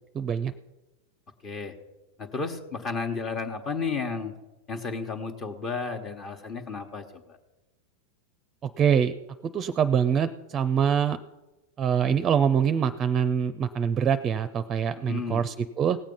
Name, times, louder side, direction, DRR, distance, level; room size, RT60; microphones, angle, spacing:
voice 1, 0.1-0.5 8.6-9.1 9.4-11.2 11.8-16.0, right 7 dB, 30° right, 12 dB, 0.5 m, -24 dB
voice 2, 1.4-1.7 2.2-4.3 4.7-7.4 15.0-15.4, left 4 dB, 30° left, 4 dB, 1.3 m, -33 dB
18.0 x 7.4 x 5.5 m, 1.1 s
hypercardioid pair, 105°, 0 cm